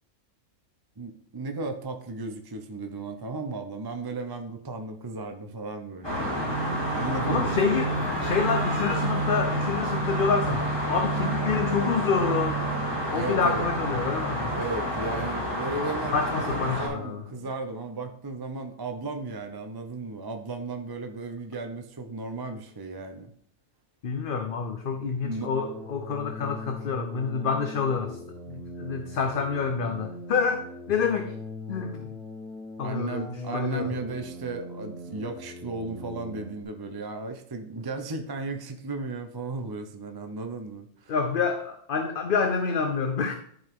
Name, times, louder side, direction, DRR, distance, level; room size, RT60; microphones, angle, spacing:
voice 1, 1.0-7.6 13.1-13.7 14.6-23.3 25.2-25.5 32.8-41.1, right 3 dB, 25° right, 5 dB, 0.6 m, -35 dB
sound 1, 6.0-16.9, right 1 dB, 20° left, 3.7 m, -28 dB
voice 2, 7.3-12.6 13.1-14.5 16.1-17.2 24.0-28.2 28.5-31.3 31.7-32.1 32.8-33.9 41.1-43.3, left 5 dB, 50° left, 7 dB, 0.7 m, -28 dB
sound 2, 25.3-36.6, left 1 dB, 5° left, 1.1 m, -41 dB
11.0 x 5.4 x 3.6 m, 0.65 s
omnidirectional pair, 1.4 m